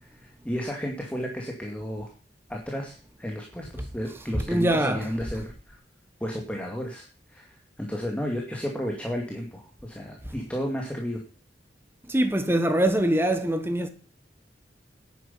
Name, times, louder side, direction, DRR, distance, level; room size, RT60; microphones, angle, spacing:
voice 1, 0.0-2.1 2.5-5.8 6.2-11.2, equal, 10° left, 2.4 m, -33 dB
voice 2, 4.5-5.0 12.1-13.9, right 1 dB, 15° right, 1.3 m, -23 dB
11.0 x 9.4 x 5.7 m
head